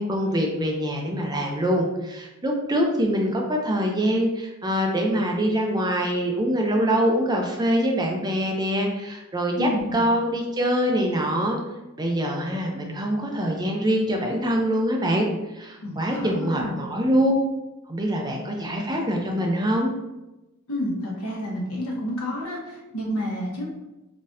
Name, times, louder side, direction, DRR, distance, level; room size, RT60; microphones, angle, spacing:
voice 1, 0.0-11.6 12.0-15.3 15.5-17.3 17.9-19.9, equal, 20° right, 1 dB, 0.5 m, -24 dB
voice 2, 9.5-10.0 15.8-17.0 20.7-23.7, left 1 dB, 75° left, -3 dB, 1.2 m, -30 dB
4.0 x 3.7 x 2.6 m, 1.0 s
head